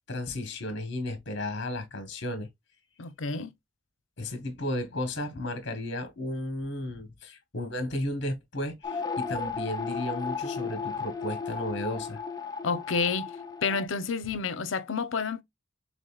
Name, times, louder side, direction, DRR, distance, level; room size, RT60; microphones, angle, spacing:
voice 1, 0.1-2.5 4.2-12.2, left 1 dB, 60° left, 1.3 m, -34 dB
voice 2, 3.0-3.5 12.6-13.3 13.6-15.4, left 5 dB, 85° left, 0.7 m, -29 dB
sound 1, 8.8-13.9, left 5 dB, 20° left, 0.6 m, -34 dB
5.1 x 3.6 x 2.3 m
head